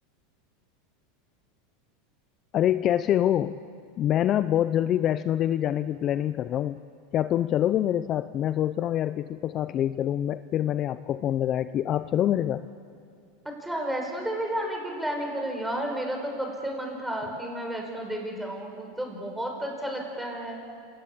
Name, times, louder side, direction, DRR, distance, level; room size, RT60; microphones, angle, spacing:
voice 1, 2.5-3.6 4.0-6.8 7.1-12.6, left 11 dB, 40° left, 13 dB, 0.6 m, -25 dB
voice 2, 13.6-20.6, right 1 dB, 5° right, 1 dB, 5.4 m, -32 dB
27.0 x 19.0 x 8.7 m, 2.4 s
supercardioid pair, 125°, 0 cm